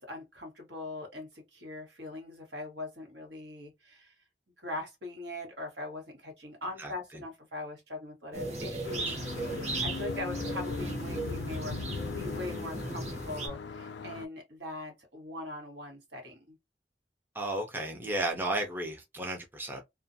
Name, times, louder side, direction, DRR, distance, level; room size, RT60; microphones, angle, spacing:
voice 1, 0.0-4.1 4.6-9.2 9.4-11.8 12.1-16.6, left 2 dB, 80° right, 1.2 m, -41 dB
sound 1, 8.3-13.5, right 2 dB, 40° right, 0.8 m, -36 dB
sound 2, 8.8-14.3, left 4 dB, 80° left, 0.4 m, -39 dB
voice 2, 17.3-19.8, right 1 dB, 10° right, 0.4 m, -33 dB
2.4 x 2.1 x 2.5 m
head